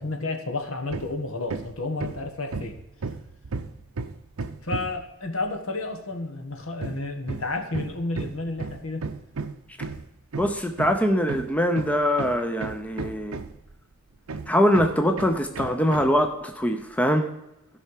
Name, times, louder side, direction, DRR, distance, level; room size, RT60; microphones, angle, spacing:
voice 1, 0.0-2.8 4.6-9.0, left 2 dB, 65° left, 5 dB, 1.6 m, -31 dB
Hammer, 0.9-1.2 1.5-5.1 6.8-13.7 14.3-16.2, right 4 dB, 75° right, 0.6 m, -34 dB
voice 2, 10.4-13.4 14.5-17.3, equal, 5° left, 5 dB, 0.6 m, -23 dB
15.5 x 5.6 x 4.9 m, 0.91 s
head